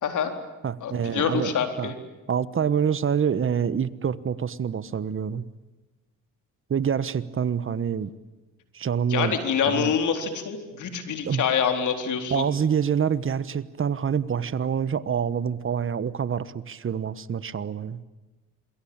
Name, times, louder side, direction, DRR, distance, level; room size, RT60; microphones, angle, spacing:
voice 1, 0.0-0.3 0.8-2.0 9.1-12.5, left 7 dB, 70° left, 6 dB, 4.1 m, -26 dB
voice 2, 0.6-1.5 1.8-1.9 2.3-5.4 6.7-8.1 8.7-9.4 9.7-9.9 11.2-11.4 12.3-18.0, right 7 dB, 40° right, 16 dB, 1.3 m, -26 dB
27.0 x 22.5 x 8.9 m, 1.1 s
cardioid pair, 85°, 31 cm